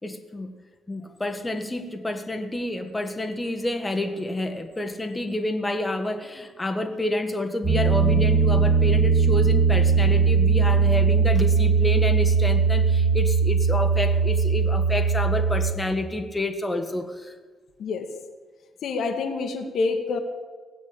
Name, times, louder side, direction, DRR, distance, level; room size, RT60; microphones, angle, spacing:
voice 1, 0.0-0.5 0.9-17.3, left 1 dB, 20° left, 5 dB, 1.5 m, -29 dB
Piano, 7.6-15.7, right 5 dB, 45° right, 5.2 m, -20 dB
voice 2, 18.8-20.2, left 4 dB, 55° left, 5 dB, 1.6 m, -27 dB
17.0 x 8.2 x 8.5 m, 1.4 s
figure-of-eight pair, 40°, 0 cm